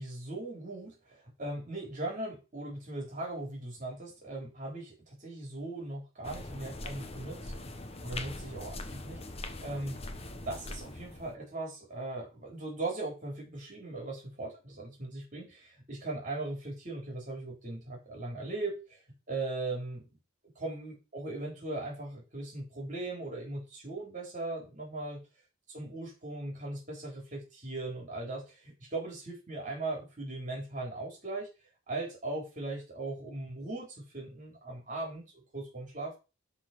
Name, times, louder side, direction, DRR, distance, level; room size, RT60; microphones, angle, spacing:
voice 1, 0.0-7.5 8.0-9.2 9.6-10.0 10.4-19.0 19.3-20.0 20.6-25.2 25.7-31.5 31.9-36.2, right 2 dB, 40° right, -1 dB, 3.6 m, -39 dB
sound 1, 6.2-11.3, left 2 dB, 30° left, 1.0 m, -42 dB
11.0 x 4.1 x 5.8 m, 0.30 s
head